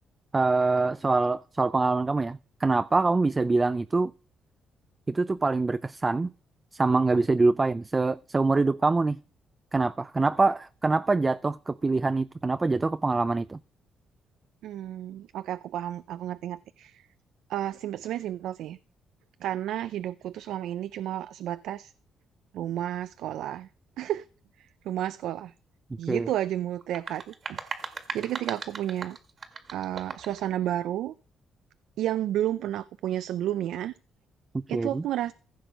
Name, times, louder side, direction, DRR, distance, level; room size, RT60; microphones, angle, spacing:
voice 1, 0.3-4.1 5.1-6.3 6.7-9.2 9.7-13.6 26.1-26.3 34.7-35.0, right 3 dB, 25° right, 0.4 m, -24 dB
voice 2, 14.6-17.1 17.5-18.8 19.4-21.9 22.5-23.7 24.0-24.2 24.6-25.5 26.0-27.7 28.1-29.2 29.7-31.1 32.0-33.9 34.7-35.3, right 12 dB, 85° right, 0.4 m, -31 dB
sound 1, 26.8-30.4, right 5 dB, 40° right, 1.7 m, -38 dB
15.0 x 6.1 x 5.1 m
cardioid pair, 90°, 0 cm